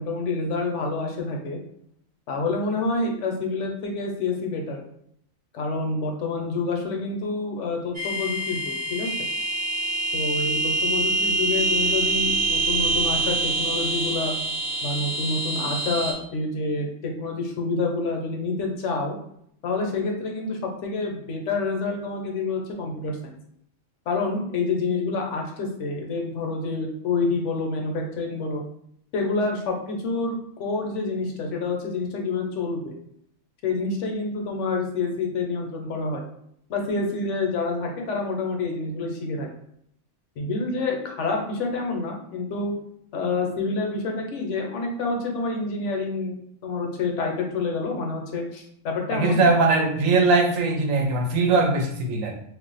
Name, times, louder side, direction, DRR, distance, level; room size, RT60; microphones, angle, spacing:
voice 1, 0.0-1.6 2.3-4.8 5.5-9.1 10.1-14.3 14.8-19.2 19.6-23.4 24.1-28.6 29.1-32.9 33.6-36.2 36.7-39.5 40.4-42.7 43.1-46.4 46.6-49.4, left 3 dB, 70° left, 1 dB, 0.9 m, -28 dB
sound 1, 7.9-16.1, right 2 dB, 40° right, 0.9 m, -25 dB
voice 2, 49.1-52.3, right 3 dB, 75° right, 2 dB, 1.0 m, -21 dB
2.5 x 2.1 x 3.9 m, 0.70 s
omnidirectional pair, 1.4 m